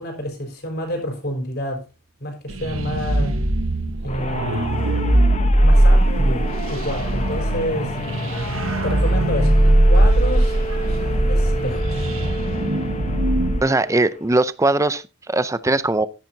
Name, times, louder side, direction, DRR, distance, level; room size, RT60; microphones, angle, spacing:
voice 1, 0.0-1.8 2.2-3.4 4.0-4.6 5.6-8.0 8.8-9.6 9.9-12.1, left 1 dB, 50° left, 4.4 m, -29 dB
sound 1, 2.5-13.6, right 1 dB, 70° right, 1.3 m, -19 dB
sound 2, 4.1-14.4, left 1 dB, 30° left, 1.0 m, -32 dB
sound 3, 5.9-11.8, right 2 dB, 90° right, 1.7 m, -39 dB
voice 2, 13.6-16.1, right 2 dB, 15° right, 0.5 m, -20 dB
13.5 x 10.5 x 2.8 m
head